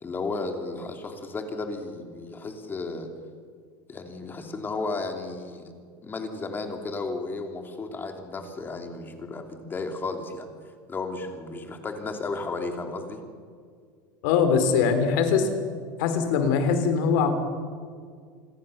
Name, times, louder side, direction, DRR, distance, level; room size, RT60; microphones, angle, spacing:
voice 1, 0.0-3.1 3.9-5.7 6.0-10.5 10.9-13.2, left 3 dB, 20° left, 5 dB, 3.0 m, -33 dB
voice 2, 14.2-15.5 16.0-17.4, left 6 dB, 75° left, 8 dB, 3.8 m, -22 dB
27.0 x 21.0 x 6.9 m, 2.1 s
supercardioid pair, 145°, 10 cm